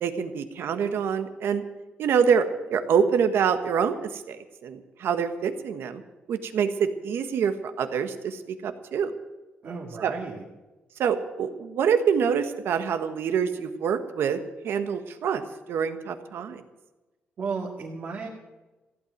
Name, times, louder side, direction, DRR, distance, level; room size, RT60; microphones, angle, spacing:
voice 1, 0.0-1.6 2.0-2.4 2.7-6.0 6.3-9.1 10.0-10.1 11.0-14.4 14.6-16.6, right 7 dB, 80° right, 9 dB, 1.4 m, -26 dB
voice 2, 9.6-10.4 17.4-18.3, right 5 dB, 50° right, -2 dB, 2.2 m, -33 dB
15.5 x 8.8 x 9.3 m, 1.1 s
cardioid pair, 135°, 4 cm